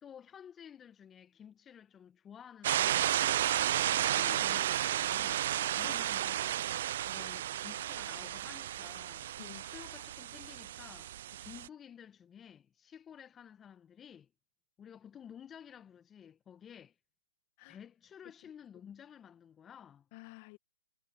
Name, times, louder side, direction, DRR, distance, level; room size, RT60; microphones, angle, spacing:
voice 1, 0.0-6.6 7.1-9.3 9.7-14.3 14.8-16.9 17.7-20.1, left 8 dB, 20° left, 1.6 m, -53 dB
sound 1, 2.6-11.7, right 12 dB, 55° right, 0.4 m, -33 dB
voice 2, 4.0-4.4 5.8-6.0 9.4-9.6 17.6-17.8 20.1-20.6, left 27 dB, 40° left, 1.5 m, -51 dB
hypercardioid pair, 125°, 0 cm